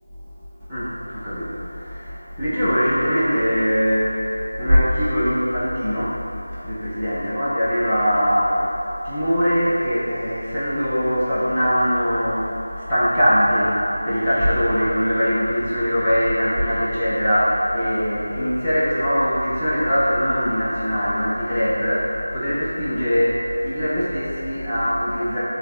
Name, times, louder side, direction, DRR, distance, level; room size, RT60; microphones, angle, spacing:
voice 1, 0.7-25.4, equal, 10° left, -14 dB, 1.2 m, -21 dB
9.6 x 4.0 x 3.8 m, 2.8 s
figure-of-eight pair, 175°, 0 cm